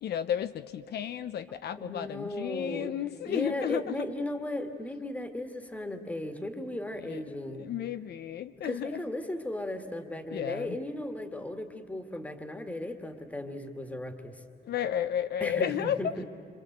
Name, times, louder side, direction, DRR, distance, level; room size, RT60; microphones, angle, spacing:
voice 1, 0.0-4.1 7.0-7.2 7.6-9.0 10.3-10.8 14.6-16.0, left 10 dB, 65° left, 11 dB, 0.6 m, -32 dB
voice 2, 1.8-2.9 3.3-7.7 8.6-14.4 15.4-16.2, left 1 dB, 10° left, 6 dB, 1.7 m, -36 dB
27.5 x 25.5 x 7.9 m, 2.5 s
wide cardioid pair, 165°, 18 cm